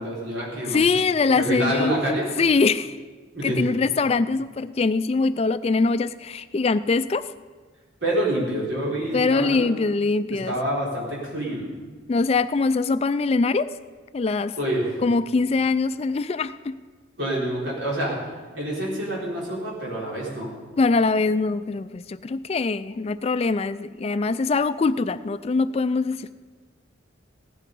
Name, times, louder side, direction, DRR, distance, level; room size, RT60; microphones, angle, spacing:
voice 1, 0.0-0.8 1.5-2.3 3.3-3.6 8.0-9.6 10.5-11.7 14.6-14.9 17.2-18.2 18.5-20.5, right 1 dB, 85° right, -4 dB, 4.3 m, -27 dB
voice 2, 0.7-1.9 2.4-3.0 3.4-7.3 9.1-10.5 12.1-13.7 14.1-14.5 15.0-16.8 20.8-26.3, left 4 dB, 30° left, 13 dB, 0.3 m, -23 dB
16.0 x 11.0 x 5.4 m, 1.4 s
head